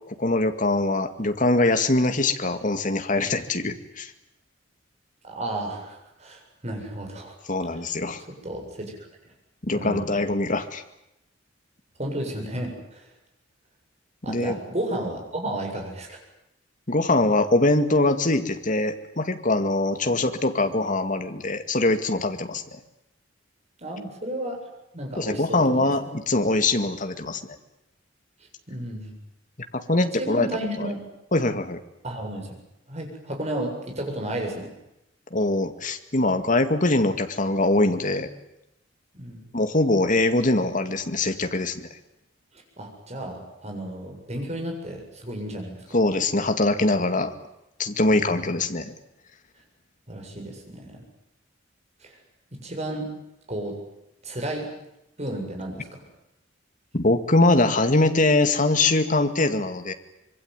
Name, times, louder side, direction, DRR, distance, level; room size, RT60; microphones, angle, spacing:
voice 1, 0.1-4.1 7.5-8.2 9.6-10.8 14.3-14.6 16.9-22.8 25.2-27.4 29.7-30.5 30.8-30.9 31.3-31.8 35.3-38.3 39.5-41.9 45.9-47.3 47.8-48.9 56.9-59.9, left 2 dB, 40° left, 8 dB, 2.1 m, -23 dB
voice 2, 5.2-7.4 8.3-9.0 9.7-10.1 12.0-13.1 14.2-16.2 20.0-20.2 23.8-24.6 24.9-25.9 28.7-29.1 30.0-31.0 32.0-32.5 32.9-34.7 39.1-39.4 42.8-45.8 48.2-48.5 50.1-51.0 52.0-52.2 52.6-53.1 53.5-53.8 54.2-54.7 55.2-56.0, right 1 dB, 35° right, 2 dB, 7.8 m, -33 dB
25.5 x 23.0 x 9.6 m, 0.85 s
head